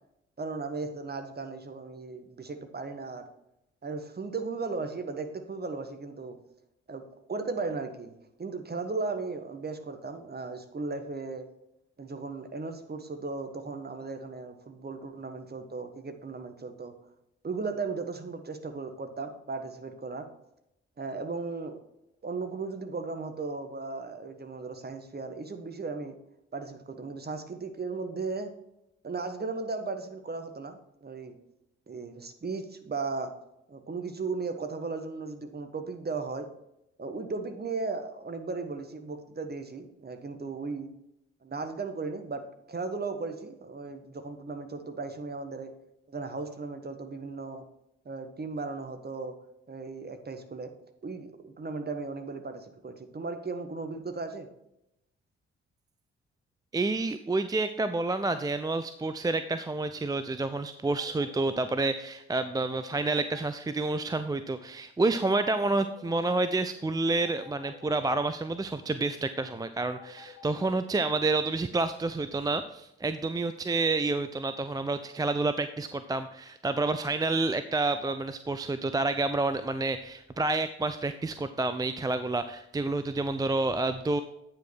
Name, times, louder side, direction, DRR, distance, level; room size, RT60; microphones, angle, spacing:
voice 1, 0.4-3.3 3.8-6.4 6.9-8.1 8.4-11.5 12.0-16.9 17.4-20.3 21.0-21.8 22.2-26.2 26.5-28.5 29.0-31.4 31.9-33.3 33.7-36.5 37.0-40.9 41.4-45.7 46.1-47.7 48.0-49.3 49.7-50.7 51.0-54.5, right 4 dB, 30° right, 7 dB, 1.3 m, -36 dB
voice 2, 56.7-84.2, right 3 dB, 10° right, 10 dB, 0.4 m, -29 dB
sound 1, 61.0-61.7 62.7-63.5 65.5-66.2 67.2-68.0 70.0-70.7, left 8 dB, 50° left, 2.0 m, -50 dB
9.0 x 5.5 x 4.5 m, 0.84 s
hypercardioid pair, 40°, 33 cm